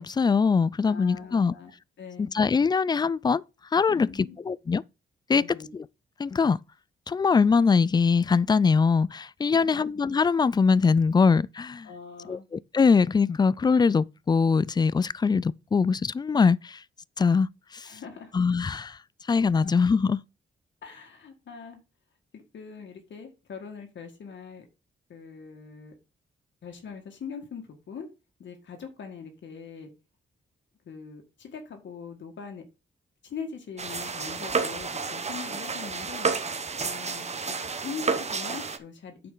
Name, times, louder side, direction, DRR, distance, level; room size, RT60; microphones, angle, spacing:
voice 1, 0.0-1.5 2.2-3.4 3.7-4.1 4.5-4.8 5.3-5.4 6.2-6.6 7.1-11.9 12.3-16.8 17.2-17.5 17.7-17.9 18.3-19.0 19.3-20.2, left 5 dB, 20° left, 0.3 m, -22 dB
voice 2, 0.8-2.4 3.9-4.4 5.3-5.7 9.4-9.8 11.8-12.5 17.8-18.3 19.5-19.7 20.8-21.8 22.3-24.7 25.1-25.9 26.6-28.1 28.4-29.9 30.8-32.6 33.2-36.3 36.8-37.6 37.8-39.3, left 6 dB, 70° left, 1.9 m, -42 dB
sound 1, 33.8-38.8, right 4 dB, 35° right, 1.1 m, -31 dB
9.0 x 6.7 x 3.9 m
cardioid pair, 105°, 20 cm